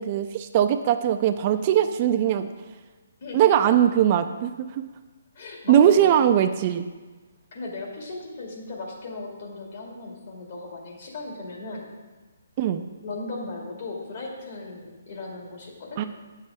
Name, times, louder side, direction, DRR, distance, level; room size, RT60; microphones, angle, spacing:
voice 1, 0.0-2.5 3.3-4.8 5.7-6.9 12.6-12.8 16.0-16.1, right 10 dB, 35° right, 8 dB, 0.4 m, -20 dB
voice 2, 3.2-3.9 5.3-6.1 7.5-11.9 13.0-16.0, left 3 dB, 50° left, -1 dB, 2.1 m, -37 dB
9.0 x 6.6 x 3.5 m, 1.3 s
hypercardioid pair, 155°, 0 cm